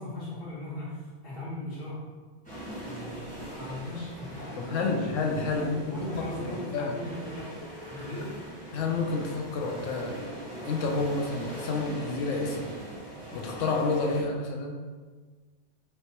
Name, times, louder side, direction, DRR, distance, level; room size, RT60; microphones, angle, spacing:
voice 1, 0.0-2.2 2.8-5.1 5.6-7.6 7.9-8.4, left 1 dB, 50° left, -12 dB, 1.9 m, -38 dB
sound 1, 2.4-14.2, equal, 5° left, 1.3 m, -41 dB
voice 2, 4.6-7.0 8.7-10.2 10.7-12.7 13.3-14.8, left 3 dB, 90° left, 2 dB, 1.0 m, -30 dB
4.5 x 3.1 x 2.9 m, 1.4 s
omnidirectional pair, 1.2 m